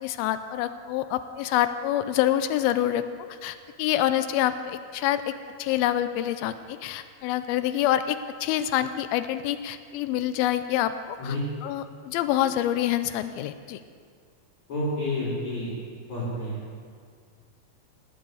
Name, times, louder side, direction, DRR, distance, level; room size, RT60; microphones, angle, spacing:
voice 1, 0.0-3.0 3.3-5.3 5.6-11.4 11.6-13.8, left 12 dB, 90° left, 11 dB, 2.5 m, -26 dB
voice 2, 14.7-15.7 16.1-16.6, left 1 dB, 50° left, -9 dB, 5.0 m, -29 dB
19.5 x 7.8 x 8.4 m, 2.1 s
omnidirectional pair, 4.3 m